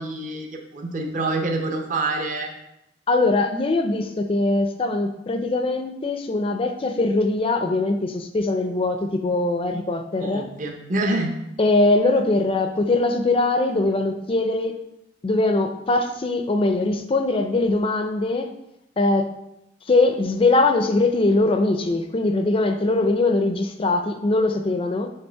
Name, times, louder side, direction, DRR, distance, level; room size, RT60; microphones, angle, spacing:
voice 1, 0.0-2.5 10.2-11.3, right 2 dB, 45° right, 3 dB, 0.7 m, -26 dB
voice 2, 3.1-10.5 11.6-14.7 15.2-18.5 19.0-19.3 19.9-25.1, left 2 dB, 30° left, 6 dB, 0.4 m, -21 dB
5.3 x 3.9 x 5.6 m, 0.86 s
head